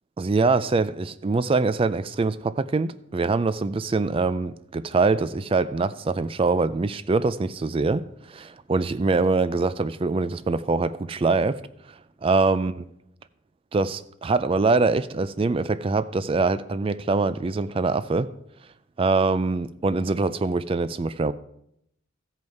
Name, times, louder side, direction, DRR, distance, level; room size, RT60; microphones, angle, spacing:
voice 1, 0.2-11.6 12.2-12.7 13.7-18.3 19.0-21.3, right 3 dB, 25° right, 0.3 m, -24 dB
14.5 x 5.4 x 4.6 m
head